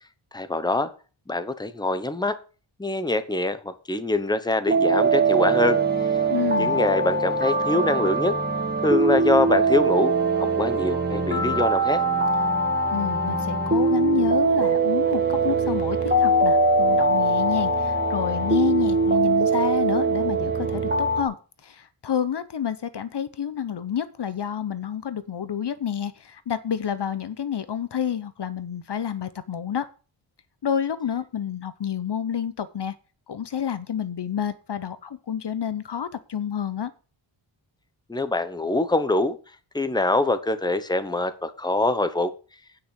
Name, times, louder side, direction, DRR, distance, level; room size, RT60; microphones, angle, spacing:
voice 1, 0.3-0.9 1.3-2.4 2.8-5.8 6.6-8.3 8.8-12.0 38.1-39.4 39.7-42.3, left 2 dB, 10° left, 11 dB, 1.0 m, -24 dB
sound 1, 4.7-21.2, right 3 dB, 20° right, 2.4 m, -22 dB
voice 2, 6.3-6.8 12.5-12.6 12.9-21.4 21.6-29.9 30.6-32.9 33.3-36.9, left 8 dB, 55° left, 14 dB, 0.9 m, -29 dB
9.4 x 6.0 x 8.2 m, 0.36 s
wide cardioid pair, 110°, 48 cm